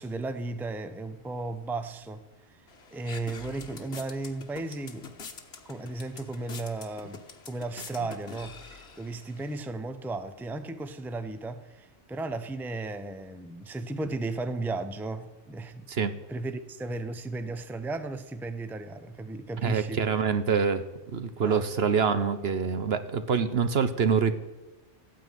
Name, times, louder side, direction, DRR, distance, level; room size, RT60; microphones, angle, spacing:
voice 1, 0.0-2.6 2.9-5.2 5.7-7.2 7.5-20.2 21.4-21.7, right 2 dB, ahead, 0.7 m, -35 dB
sound 1, 2.7-9.6, left 5 dB, 60° left, 1.5 m, -46 dB
voice 2, 19.6-20.8 21.1-24.3, right 6 dB, 55° right, 1.1 m, -25 dB
14.5 x 9.3 x 9.2 m
omnidirectional pair, 1.3 m